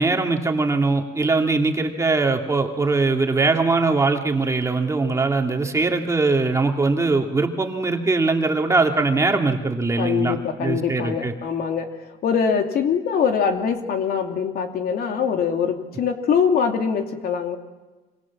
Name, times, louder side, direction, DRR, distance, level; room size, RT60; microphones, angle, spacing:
voice 1, 0.0-11.3, right 3 dB, 15° right, 2 dB, 2.5 m, -21 dB
voice 2, 10.0-17.6, left 6 dB, 65° left, 5 dB, 2.7 m, -23 dB
26.5 x 25.0 x 7.4 m, 1.2 s
cardioid pair, 110°, 17 cm